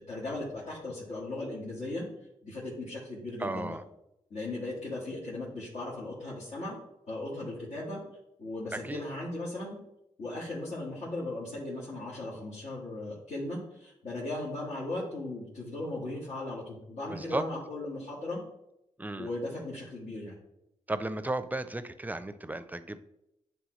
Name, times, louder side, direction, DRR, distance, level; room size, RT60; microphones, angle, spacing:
voice 1, 0.1-2.1 2.4-3.8 4.3-6.8 7.1-8.0 8.4-9.8 10.2-18.4 19.2-20.4, left 2 dB, 80° left, -9 dB, 2.1 m, -37 dB
voice 2, 3.4-3.8 8.7-9.0 17.1-17.4 19.0-19.3 20.9-23.0, right 2 dB, 15° right, 12 dB, 0.5 m, -34 dB
9.3 x 3.3 x 3.1 m, 0.85 s
cardioid pair, 55°, 13 cm